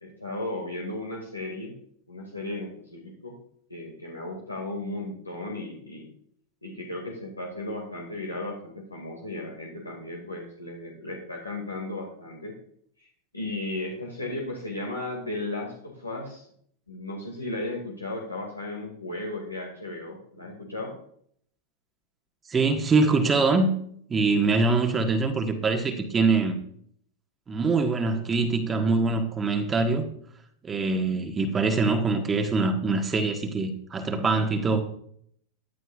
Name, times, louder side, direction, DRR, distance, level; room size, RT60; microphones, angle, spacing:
voice 1, 0.0-1.7 2.1-3.4 3.7-6.1 6.6-12.6 13.0-13.1 13.3-16.5 16.9-20.9, left 2 dB, 80° left, -1 dB, 2.0 m, -35 dB
voice 2, 22.5-23.7 24.1-26.5 27.5-30.0 30.6-34.8, right 3 dB, 20° right, 5 dB, 1.3 m, -24 dB
15.0 x 11.0 x 2.4 m, 0.64 s
figure-of-eight pair, 90°, 0 cm